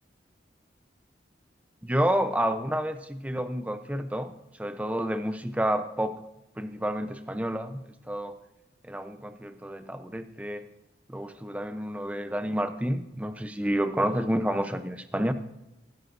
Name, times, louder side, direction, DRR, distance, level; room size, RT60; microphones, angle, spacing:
voice 1, 1.8-4.3 4.6-6.2 6.6-8.4 8.8-10.7 11.1-15.3, equal, 10° right, 9 dB, 0.6 m, -29 dB
20.5 x 10.5 x 2.6 m, 0.90 s
head